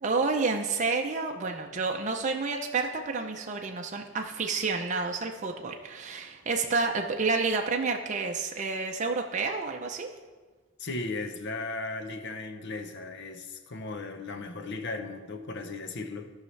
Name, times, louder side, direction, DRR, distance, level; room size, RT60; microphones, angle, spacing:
voice 1, 0.0-10.1, right 4 dB, 40° right, 2 dB, 0.6 m, -29 dB
voice 2, 10.8-16.3, left 3 dB, 60° left, 7 dB, 0.8 m, -36 dB
15.0 x 5.6 x 3.3 m, 1.4 s
head